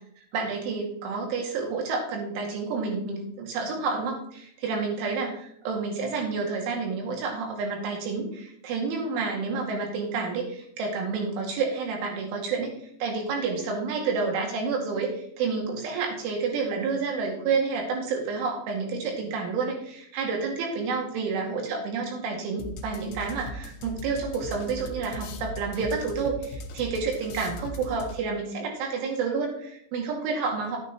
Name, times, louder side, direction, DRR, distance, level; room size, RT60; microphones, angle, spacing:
voice 1, 0.3-5.3 5.7-12.7 13.0-30.8, right 4 dB, 80° right, 0 dB, 4.6 m, -29 dB
sound 1, 22.6-28.5, equal, 65° left, 3.1 m, -39 dB
13.5 x 9.1 x 3.0 m, 0.68 s
omnidirectional pair, 5.5 m